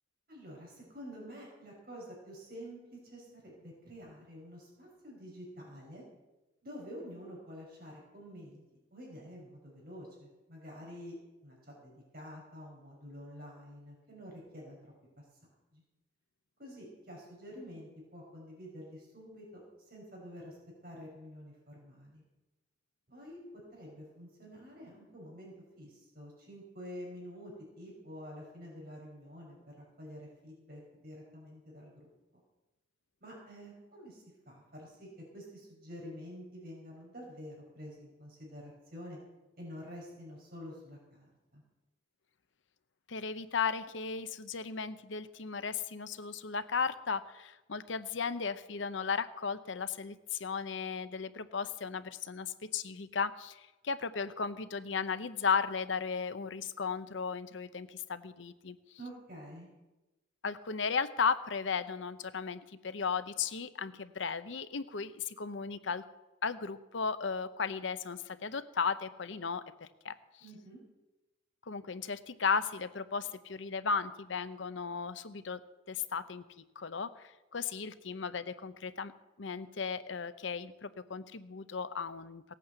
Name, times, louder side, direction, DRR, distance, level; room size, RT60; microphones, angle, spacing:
voice 1, 0.3-6.0 6.6-8.6 8.9-11.2 11.4-15.3 15.7-15.8 16.6-20.6 20.8-22.2 23.1-32.1 33.2-35.1 35.3-39.2 39.5-41.6 59.0-59.7 70.4-70.8, equal, 50° right, -2 dB, 5.6 m, -48 dB
voice 2, 43.1-58.8 60.4-66.0 66.4-69.6 70.0-70.1 71.7-75.6 75.9-76.4 76.8-79.1 79.4-82.4, left 5 dB, 70° left, 13 dB, 0.7 m, -35 dB
18.0 x 8.5 x 7.9 m, 1.1 s
head